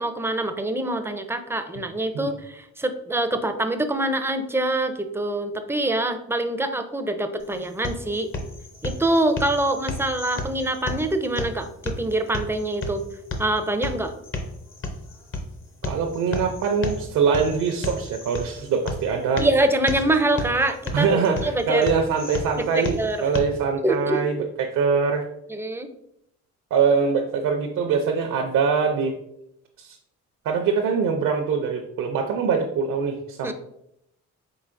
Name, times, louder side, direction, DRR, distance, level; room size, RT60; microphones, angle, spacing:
voice 1, 0.0-8.3 8.8-13.0 13.4-14.1 19.4-21.8 22.8-23.2 23.8-24.2 25.5-25.9 33.4-33.5, right 1 dB, 10° right, 7 dB, 0.4 m, -25 dB
sound 1, 7.4-23.4, left 2 dB, 40° left, 0.8 m, -34 dB
voice 2, 15.8-19.4 20.9-25.2 26.7-29.2 29.8-30.0 30.4-33.5, right 5 dB, 75° right, 3 dB, 0.5 m, -23 dB
4.7 x 3.9 x 2.5 m, 0.79 s
cardioid pair, 90°, 30 cm